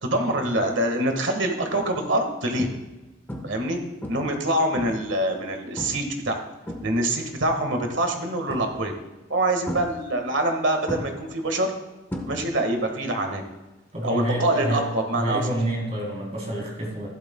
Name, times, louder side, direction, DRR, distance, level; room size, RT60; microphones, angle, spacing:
voice 1, 0.0-2.7 3.4-3.8 4.1-6.4 6.8-8.9 9.3-11.7 12.3-13.4 14.0-15.5, right 1 dB, 65° right, 5 dB, 1.6 m, -25 dB
sound 1, 1.0-1.3 1.9-2.0 2.6-3.0 3.3-3.7 4.0-5.2 5.8-6.1 6.4-7.3 8.5-9.0 9.7-10.5 10.9-12.8 13.0-13.4 15.5-15.6, equal, 10° left, 1.1 m, -36 dB
voice 2, 13.9-14.8 15.1-17.1, right 1 dB, 35° right, -2 dB, 3.5 m, -28 dB
15.0 x 12.0 x 2.3 m, 1.1 s
head